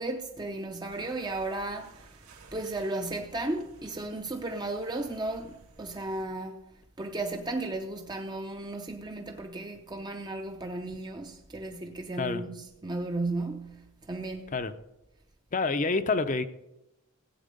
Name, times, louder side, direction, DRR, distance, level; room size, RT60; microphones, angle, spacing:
voice 1, 0.0-2.1 2.5-6.6 7.0-14.5, right 2 dB, 20° right, 0.6 m, -35 dB
sound 1, 0.9-6.2, right 3 dB, 85° right, 2.5 m, -55 dB
voice 2, 15.5-16.4, left 3 dB, 35° left, 0.6 m, -27 dB
15.5 x 8.4 x 5.2 m
head